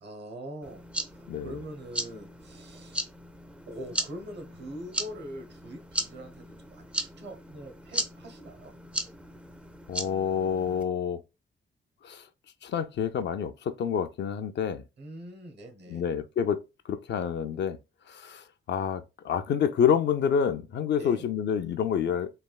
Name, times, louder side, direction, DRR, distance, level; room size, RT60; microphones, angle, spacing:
voice 1, 0.0-3.0 3.7-8.7 15.0-16.1 21.0-21.2, equal, 60° right, 0.8 m, -43 dB
sound 1, 0.6-10.8, right 1 dB, 5° right, 0.3 m, -37 dB
voice 2, 9.9-11.2 12.0-12.2 12.6-14.8 15.9-16.6 16.9-17.8 18.1-22.3, left 7 dB, 65° left, 0.4 m, -28 dB
3.2 x 2.2 x 2.3 m
cardioid pair, 85°, 20 cm